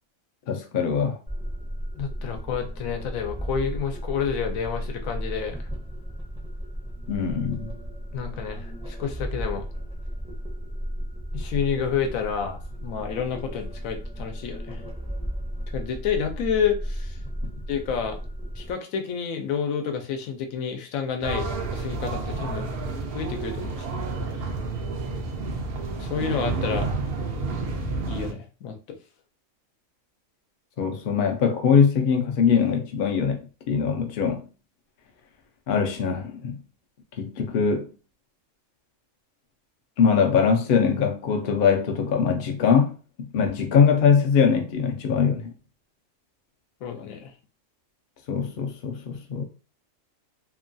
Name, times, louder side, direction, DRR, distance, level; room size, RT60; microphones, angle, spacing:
voice 1, 0.5-1.2 7.1-7.7 30.8-34.5 35.7-36.6 37.2-37.9 40.0-42.9 43.2-45.5 48.3-49.4, left 6 dB, 60° left, 0.5 m, -22 dB
sound 1, 1.3-18.7, equal, 5° right, 0.4 m, -34 dB
voice 2, 2.0-5.6 8.1-9.6 11.3-14.9 15.7-17.2 17.7-18.2 18.6-22.7 23.1-23.9 26.0-26.9 28.0-29.0 46.8-47.3, left 7 dB, 85° left, 1.0 m, -29 dB
sound 2, 21.2-28.3, right 3 dB, 60° right, 0.6 m, -30 dB
2.9 x 2.2 x 2.5 m
omnidirectional pair, 1.4 m